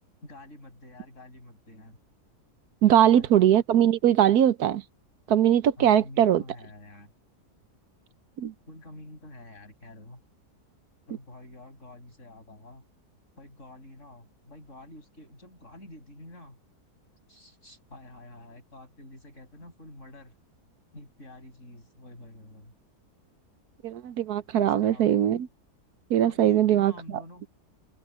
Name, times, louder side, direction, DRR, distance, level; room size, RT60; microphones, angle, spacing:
voice 1, 0.2-2.0 2.9-3.4 5.8-7.1 8.7-10.2 11.1-12.8 13.4-16.6 17.3-20.3 20.9-22.7 24.6-25.4 26.3-27.4, left 1 dB, 50° left, 7.7 m, -47 dB
voice 2, 2.8-4.8 5.3-6.4 8.4-8.5 23.8-25.5 26.1-26.9, right 10 dB, 75° right, 1.3 m, -21 dB
open air
omnidirectional pair, 1.7 m